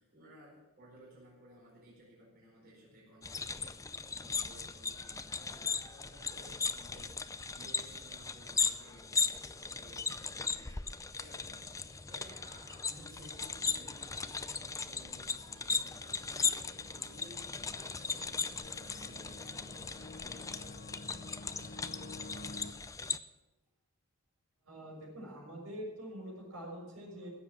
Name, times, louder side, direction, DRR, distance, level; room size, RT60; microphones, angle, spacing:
voice 1, 0.0-20.9, right 1 dB, 45° right, -5 dB, 4.8 m, -57 dB
sound 1, 3.2-23.2, left 5 dB, 15° left, 0.5 m, -37 dB
sound 2, 9.8-22.7, left 2 dB, 45° left, 0.8 m, -53 dB
voice 2, 24.6-27.3, equal, 70° right, -1 dB, 6.0 m, -45 dB
15.5 x 7.7 x 7.3 m, 1.1 s
head